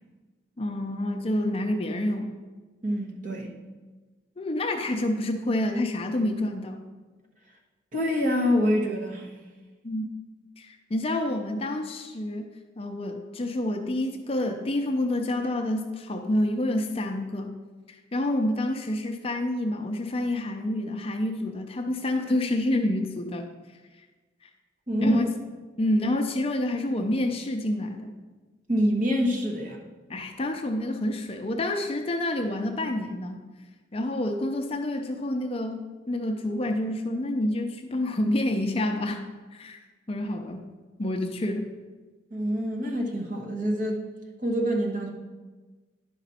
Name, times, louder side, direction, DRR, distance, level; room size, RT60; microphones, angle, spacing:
voice 1, 0.6-2.4 4.4-6.8 9.8-10.1 10.6-12.5 12.8-17.6 17.9-23.5 24.4-24.5 25.0-25.3 25.8-28.1 30.1-33.4 33.9-39.2 39.5-39.8 40.1-40.6 41.0-41.7, left 1 dB, 30° left, 4 dB, 0.5 m, -28 dB
voice 2, 2.8-3.5 7.9-9.3 24.9-25.2 28.7-29.8 42.3-44.0 44.4-45.1, equal, 40° right, -1 dB, 1.2 m, -26 dB
11.0 x 5.0 x 4.2 m, 1.3 s
head